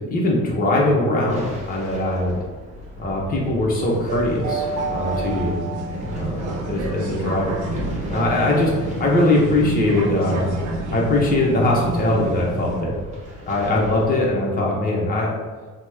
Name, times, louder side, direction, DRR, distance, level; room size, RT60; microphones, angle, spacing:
voice 1, 0.1-2.4 3.0-4.6 4.9-5.6 6.1-6.4 6.7-7.6 8.1-8.7 9.0-10.4 10.9-13.0 13.5-15.3, left 1 dB, 30° left, -3 dB, 0.7 m, -21 dB
sound 1, 1.3-14.1, left 1 dB, 25° right, 1.1 m, -36 dB
sound 2, 3.8-12.8, right 2 dB, 75° right, 0.6 m, -28 dB
2.9 x 2.1 x 3.4 m, 1.4 s
cardioid pair, 90°, 30 cm